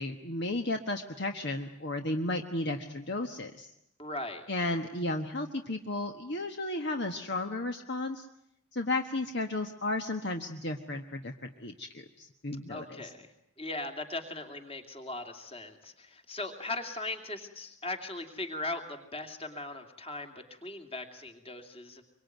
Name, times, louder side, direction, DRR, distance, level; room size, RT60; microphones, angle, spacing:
voice 1, 0.0-3.7 4.5-8.3 8.7-13.1, left 2 dB, 50° left, 5 dB, 1.4 m, -34 dB
voice 2, 4.0-4.5 12.7-13.3 13.6-22.0, left 2 dB, 25° left, 4 dB, 2.8 m, -39 dB
25.5 x 23.5 x 9.3 m, 0.76 s
head